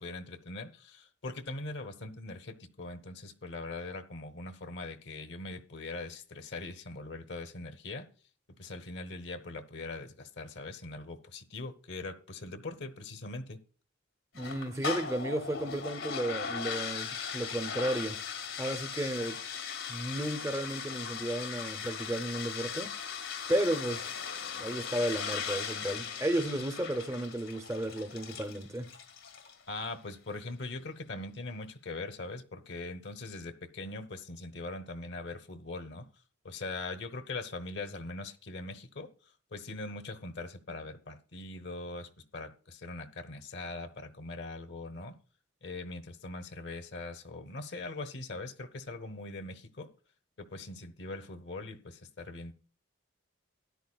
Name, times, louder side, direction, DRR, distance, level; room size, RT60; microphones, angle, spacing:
voice 1, 0.0-8.1 8.6-13.6 29.7-36.1 36.4-39.1 39.5-45.1 45.6-49.9 50.4-52.5, left 2 dB, 60° left, 0.9 m, -41 dB
voice 2, 14.3-18.2 18.6-19.4 19.9-22.9 23.5-24.2 24.6-28.9, right 1 dB, 15° right, 0.6 m, -33 dB
sound 1, 14.4-29.6, left 6 dB, 90° left, 1.9 m, -38 dB
13.0 x 10.5 x 2.3 m
head